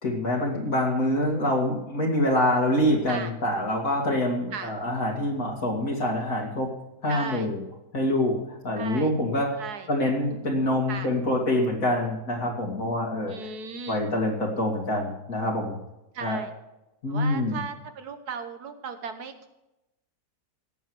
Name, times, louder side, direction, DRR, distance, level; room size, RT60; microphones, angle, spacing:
voice 1, 0.0-6.7 7.0-7.6 7.9-8.4 8.6-9.6 9.9-13.3 13.9-15.8 16.2-16.4 17.0-17.6, left 1 dB, 65° left, -1 dB, 2.7 m, -25 dB
voice 2, 7.1-7.5 8.8-9.1 9.6-9.9 10.9-11.1 13.3-14.1 16.1-16.5 17.1-19.5, right 5 dB, 85° right, 8 dB, 1.8 m, -36 dB
17.5 x 7.3 x 6.2 m, 0.93 s
omnidirectional pair, 1.6 m